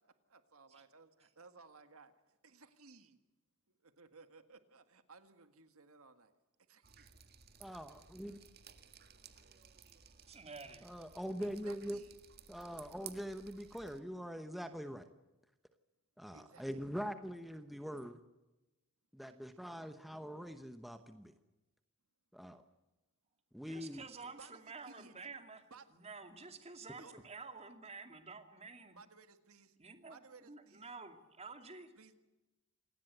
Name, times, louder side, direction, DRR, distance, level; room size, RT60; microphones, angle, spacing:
voice 1, 0.3-3.2 3.8-6.3 6.7-7.1 11.4-12.2 16.3-16.9 24.4-25.2 25.7-25.8 27.0-27.2 28.9-29.8 30.1-30.9 32.0-32.2, right 4 dB, 70° right, 9 dB, 1.8 m, -59 dB
Drip, 6.8-14.0, right 8 dB, 45° right, 1.8 m, -57 dB
voice 2, 7.6-8.4 10.8-12.0 12.5-15.1 16.2-18.2 19.1-21.3 22.3-22.6 23.5-24.0, equal, ahead, 8 dB, 1.0 m, -43 dB
voice 3, 10.3-10.9 23.6-25.6 25.9-29.0 29.8-31.9, right 4 dB, 30° right, 7 dB, 2.5 m, -50 dB
27.5 x 19.0 x 8.0 m, 1.1 s
head